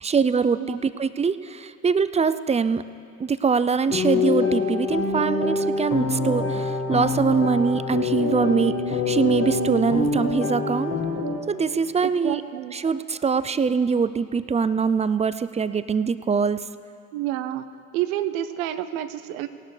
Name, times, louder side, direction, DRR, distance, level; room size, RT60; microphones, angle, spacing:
voice 1, 0.0-2.8 3.2-10.9 11.5-12.4 12.7-16.6, right 5 dB, 15° right, 14 dB, 0.3 m, -23 dB
sound 1, 3.9-11.4, left 3 dB, 35° left, 1.8 m, -25 dB
voice 2, 12.0-12.7 17.1-17.6 17.9-19.5, right 12 dB, 85° right, 11 dB, 0.6 m, -29 dB
18.5 x 11.0 x 3.3 m, 2.4 s
hypercardioid pair, 55°, 41 cm